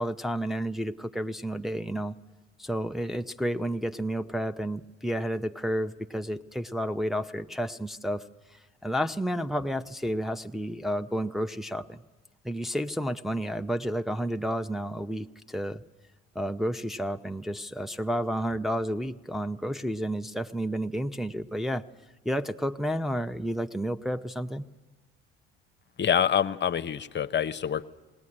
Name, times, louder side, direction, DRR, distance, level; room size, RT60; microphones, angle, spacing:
voice 1, 0.0-2.1 2.6-8.3 8.5-12.0 12.4-15.8 16.3-21.8 22.2-24.6, equal, ahead, 5 dB, 0.8 m, -31 dB
voice 2, 26.0-27.8, left 8 dB, 40° left, 11 dB, 0.8 m, -26 dB
19.0 x 18.5 x 9.8 m, 1.2 s
hypercardioid pair, 60°, 29 cm